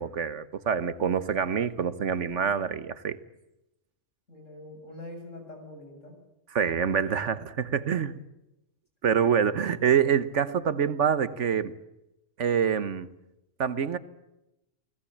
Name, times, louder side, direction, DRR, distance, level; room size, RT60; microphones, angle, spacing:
voice 1, 0.0-3.2 6.5-8.2 9.0-11.7 12.4-13.1 13.6-14.0, right 7 dB, 70° right, 14 dB, 1.4 m, -26 dB
voice 2, 4.3-6.2, left 1 dB, 80° left, 3 dB, 7.2 m, -44 dB
29.0 x 18.5 x 8.7 m, 0.90 s
omnidirectional pair, 1.3 m